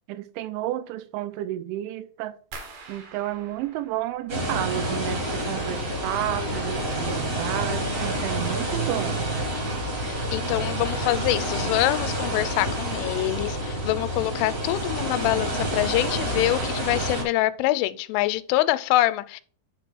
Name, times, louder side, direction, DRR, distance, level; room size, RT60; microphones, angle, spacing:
voice 1, 0.1-2.4 2.9-9.2, right 13 dB, 85° right, 2.8 m, -31 dB
sound 1, 2.5-5.4 5.7-6.4 6.7-7.1 7.6-7.7, right 4 dB, 60° right, 2.3 m, -46 dB
sound 2, 4.3-17.2, right 1 dB, 35° right, 1.2 m, -28 dB
voice 2, 10.0-19.4, left 16 dB, 90° left, 3.0 m, -25 dB
9.8 x 3.5 x 6.1 m
omnidirectional pair, 5.5 m